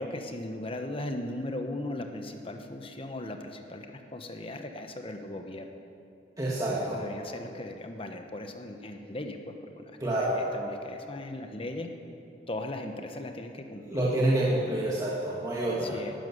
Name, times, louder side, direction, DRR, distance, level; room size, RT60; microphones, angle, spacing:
voice 1, 0.0-5.7 6.6-10.0 10.4-11.9 12.5-14.2 15.8-16.1, left 1 dB, 30° left, 5 dB, 1.2 m, -38 dB
voice 2, 6.4-7.1 10.0-10.5 13.8-16.0, right 1 dB, 20° right, -5 dB, 1.8 m, -28 dB
12.0 x 12.0 x 9.5 m, 2.7 s
head